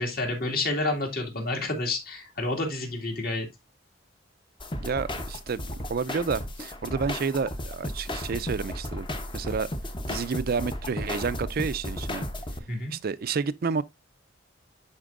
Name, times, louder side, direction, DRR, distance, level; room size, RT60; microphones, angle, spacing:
voice 1, 0.0-3.5 12.7-12.9, left 2 dB, 50° left, 2.2 m, -29 dB
sound 1, 4.6-12.6, left 1 dB, 25° left, 0.8 m, -34 dB
voice 2, 4.8-9.1 9.3-9.7 10.1-12.3 12.9-13.8, right 5 dB, 50° right, 0.4 m, -30 dB
11.0 x 4.3 x 2.5 m
head